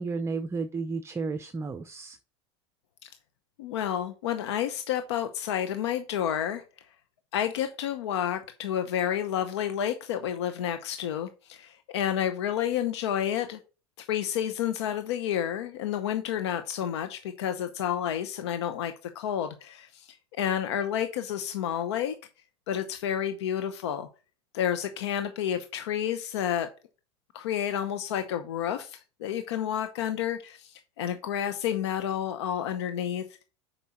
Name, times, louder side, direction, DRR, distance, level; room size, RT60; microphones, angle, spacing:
voice 1, 0.0-2.2, right 4 dB, 20° right, 0.6 m, -32 dB
voice 2, 3.6-6.6 7.3-13.6 14.0-20.1 20.4-22.1 22.7-24.1 24.5-26.7 27.3-33.2, left 10 dB, 80° left, 0.8 m, -30 dB
7.1 x 5.4 x 4.3 m
hypercardioid pair, 100°, 14 cm